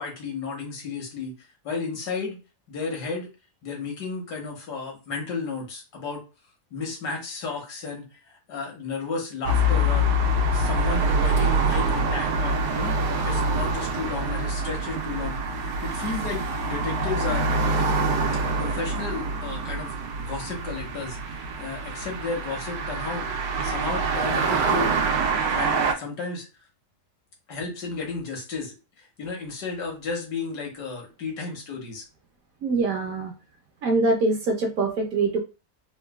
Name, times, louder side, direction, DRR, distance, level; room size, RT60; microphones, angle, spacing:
voice 1, 0.0-1.3 1.6-2.4 2.7-3.3 3.6-6.2 6.7-10.1 10.5-17.5 18.6-19.9 20.2-23.3 23.6-24.9 25.5-26.5 27.5-32.0, left 4 dB, 75° left, 0 dB, 1.6 m, -33 dB
sound 1, 9.5-25.9, right 2 dB, 85° right, 1.2 m, -25 dB
voice 2, 32.6-33.3 33.8-35.4, right 3 dB, 65° right, 3 dB, 0.9 m, -23 dB
3.8 x 2.2 x 2.2 m, 0.30 s
omnidirectional pair, 1.8 m